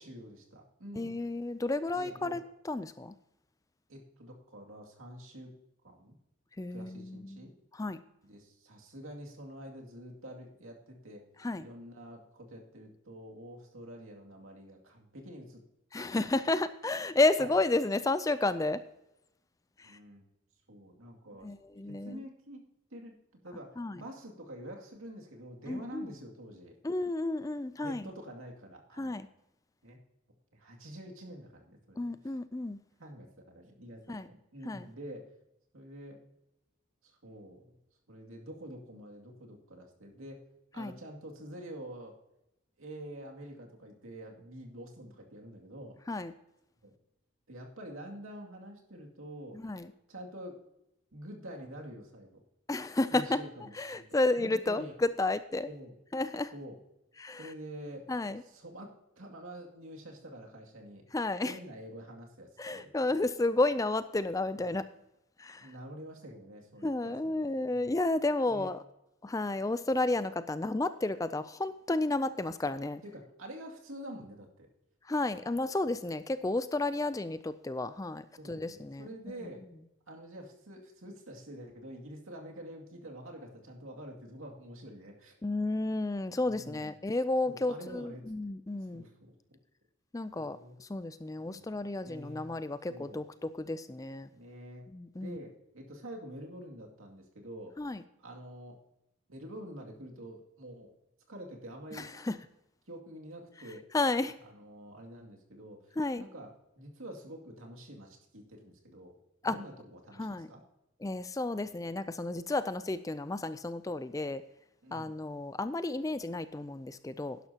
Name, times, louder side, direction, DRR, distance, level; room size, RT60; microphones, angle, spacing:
voice 1, 0.0-1.3 1.9-2.4 3.9-5.5 5.8-6.2 6.7-7.5 8.2-11.2 11.6-15.6 16.0-16.2 17.4-17.5 19.8-20.2 20.7-21.5 21.9-22.6 22.9-26.8 27.8-29.2 29.8-30.0 30.5-32.3 33.0-35.3 35.7-36.2 37.0-37.8 38.1-40.4 40.7-42.1 42.8-46.0 46.8-46.9 47.5-49.6 50.1-50.6 51.1-52.4 53.1-54.0 54.4-54.9 55.7-56.0 56.5-56.8 57.4-58.1 58.4-61.1 61.4-63.1 64.6-64.8 65.6-68.0 68.5-68.7 73.0-74.7 78.4-79.6 80.1-85.3 86.4-86.9 87.5-88.2 88.9-89.6 90.3-90.8 91.4-92.5 92.9-93.2 94.3-94.9 95.2-97.8 98.2-98.8 99.3-101.0 101.3-102.1 102.9-103.9 104.4-109.2 109.4-110.6 114.8-115.1, right 1 dB, 80° right, 1 dB, 2.4 m, -47 dB
voice 2, 1.0-3.1 6.6-7.4 7.7-8.0 11.4-11.6 15.9-18.8 19.8-20.0 21.4-22.2 23.8-24.0 25.7-26.1 26.8-28.1 29.0-29.3 32.0-32.8 34.1-34.3 34.6-34.8 40.8-41.0 46.1-46.3 49.5-49.9 52.7-55.7 56.1-56.5 57.2-57.5 58.1-58.4 61.1-61.6 62.6-64.8 65.4-65.7 66.8-68.8 69.2-73.0 75.0-79.1 85.4-89.0 90.1-94.3 94.9-95.4 97.8-98.0 101.9-102.4 103.9-104.3 106.0-106.2 109.4-109.6 110.2-110.5 111.0-114.4 114.9-117.4, left 2 dB, 15° left, 13 dB, 0.4 m, -32 dB
12.0 x 11.0 x 2.9 m, 0.85 s
head